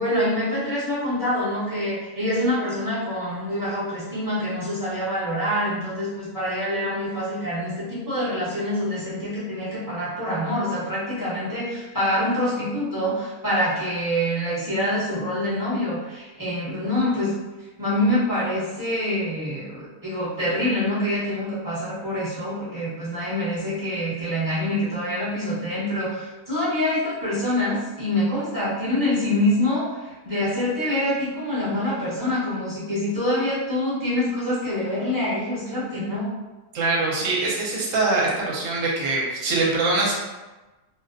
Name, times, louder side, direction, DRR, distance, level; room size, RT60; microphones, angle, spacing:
voice 1, 0.0-17.3 17.8-36.3, left 1 dB, 20° right, -11 dB, 0.7 m, -25 dB
voice 2, 36.7-40.1, right 3 dB, 65° right, -3 dB, 1.0 m, -23 dB
2.5 x 2.1 x 2.5 m, 1.1 s
omnidirectional pair, 1.7 m